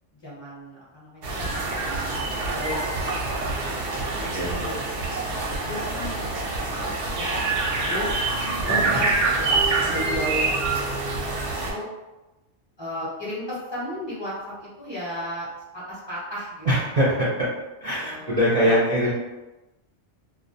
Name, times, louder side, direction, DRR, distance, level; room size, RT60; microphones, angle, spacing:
voice 1, 0.2-2.2 2.5-2.8 3.2-8.1 8.6-10.8 11.1-11.8 12.8-15.5 15.7-16.7 16.9-17.0 18.0-18.8 19.0-19.1, equal, 30° left, -9 dB, 0.6 m, -35 dB
sound 1, 1.2-11.7, right 3 dB, 90° right, 1.0 m, -26 dB
voice 2, 4.3-4.6 8.7-9.0 16.6-17.5 17.8-19.1, equal, 50° right, -8 dB, 0.4 m, -22 dB
2.3 x 2.1 x 2.6 m, 1.1 s
omnidirectional pair, 1.2 m